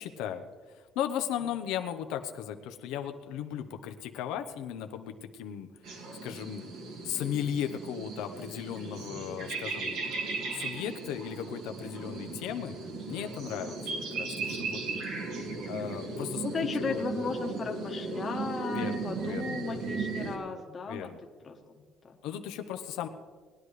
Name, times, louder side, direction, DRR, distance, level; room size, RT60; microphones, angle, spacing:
voice 1, 0.0-5.7 6.2-6.6 7.0-10.0 10.5-12.8 13.1-14.8 15.7-16.4 16.7-17.0 18.7-19.5 20.9-21.2 22.2-23.1, left 9 dB, 85° left, 6 dB, 0.9 m, -36 dB
sound 1, 5.8-20.4, right 3 dB, 70° right, 2.2 m, -36 dB
voice 2, 13.6-14.0 16.4-21.1 21.4-22.2, left 4 dB, 20° left, 3 dB, 1.2 m, -36 dB
20.0 x 11.0 x 3.3 m, 1.5 s
cardioid pair, 180°, 0 cm